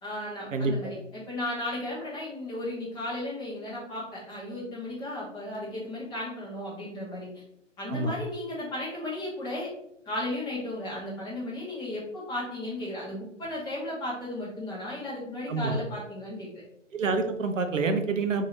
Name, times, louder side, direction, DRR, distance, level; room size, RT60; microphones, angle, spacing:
voice 1, 0.0-7.3 7.8-9.7 10.1-16.5, left 1 dB, 10° left, -6 dB, 0.9 m, -35 dB
voice 2, 16.9-18.5, right 4 dB, 75° right, 6 dB, 0.6 m, -27 dB
3.8 x 2.7 x 3.1 m, 0.76 s
figure-of-eight pair, 130°, 38 cm